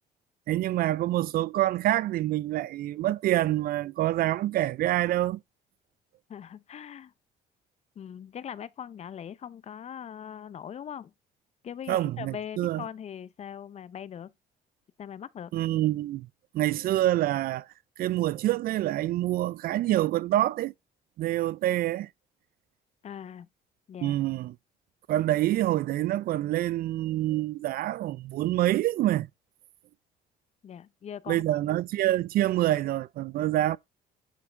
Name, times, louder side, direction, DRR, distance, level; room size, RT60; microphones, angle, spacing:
voice 1, 0.5-5.4 11.9-12.8 15.5-16.3 16.5-17.7 18.0-20.7 21.2-22.1 24.0-24.5 25.1-29.3 31.3-33.8, right 14 dB, 60° right, 0.4 m, -26 dB
voice 2, 6.3-7.1 8.0-11.1 11.6-14.3 15.0-15.5 23.0-23.5 23.9-24.2 30.6-31.6, left 8 dB, 40° left, 0.6 m, -41 dB
10.0 x 4.7 x 4.5 m
cardioid pair, 110°, 17 cm